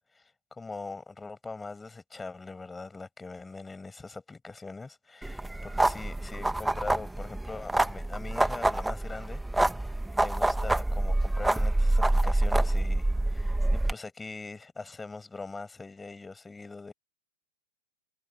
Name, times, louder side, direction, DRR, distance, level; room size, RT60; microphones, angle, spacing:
voice 1, 0.1-9.4 9.8-16.9, left 3 dB, 10° left, 7.8 m, -42 dB
sound 1, 5.2-13.9, right 1 dB, 5° right, 2.1 m, -27 dB
figure-of-eight pair, 95°, 0 cm